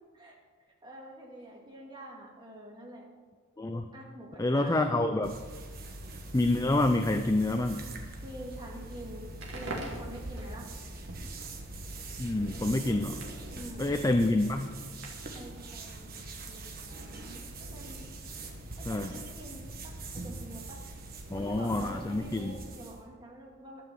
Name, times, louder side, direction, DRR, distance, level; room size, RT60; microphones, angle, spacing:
voice 1, 0.8-3.0 3.9-4.7 5.0-5.1 8.2-10.7 13.5-14.0 15.3-18.0 18.8-19.9 20.2-20.8 21.3-23.9, right 1 dB, 20° right, -2 dB, 2.2 m, -46 dB
voice 2, 4.4-5.3 6.3-7.9 12.2-13.2 13.8-14.8 18.9-19.1 21.3-22.6, left 2 dB, 15° left, 6 dB, 0.4 m, -27 dB
sound 1, 5.2-23.0, right 2 dB, 45° right, 1.3 m, -43 dB
Crackle, 9.3-15.4, right 2 dB, 60° right, 2.2 m, -46 dB
12.5 x 6.0 x 7.5 m, 1.5 s
head